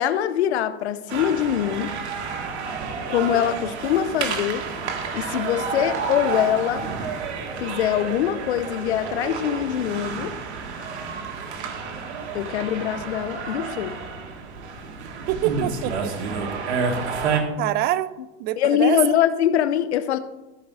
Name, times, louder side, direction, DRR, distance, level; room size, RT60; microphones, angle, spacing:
voice 1, 0.0-1.9 3.1-4.7 5.1-6.9 7.6-10.3 12.3-14.0 18.6-20.2, left 10 dB, 85° left, 0.9 m, -23 dB
sound 1, 1.1-17.4, right 5 dB, 90° right, 1.7 m, -30 dB
voice 2, 15.3-16.1 17.6-18.1 18.4-19.0, right 14 dB, 30° right, 0.4 m, -25 dB
13.5 x 4.7 x 5.5 m
supercardioid pair, 135°, 32 cm